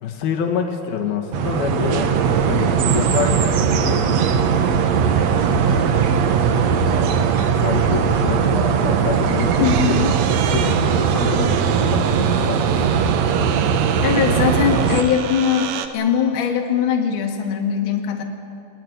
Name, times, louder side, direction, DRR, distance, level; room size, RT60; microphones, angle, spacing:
voice 1, 0.0-2.1 2.5-4.1 7.5-10.0 10.5-13.1, left 7 dB, 75° left, 2 dB, 3.7 m, -27 dB
sound 1, 1.3-15.0, right 7 dB, 65° right, 1.8 m, -19 dB
voice 2, 9.6-10.1 14.0-18.2, left 8 dB, 40° left, 3 dB, 2.0 m, -21 dB
sound 2, 9.6-15.9, right 9 dB, 85° right, 3.0 m, -31 dB
22.0 x 19.0 x 9.5 m, 2.5 s
omnidirectional pair, 4.5 m